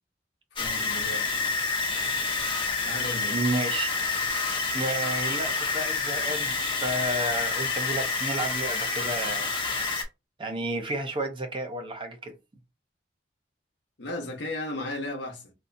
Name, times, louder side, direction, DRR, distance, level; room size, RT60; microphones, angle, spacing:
voice 1, 0.6-1.4 2.8-3.4 14.0-15.5, left 1 dB, 70° left, 0.9 m, -35 dB
sound 1, 0.6-10.0, left 4 dB, 30° left, 0.7 m, -28 dB
voice 2, 3.3-3.9 4.7-6.5 6.8-9.5 10.4-12.3, right 1 dB, 30° right, 0.6 m, -31 dB
3.2 x 2.8 x 2.6 m
head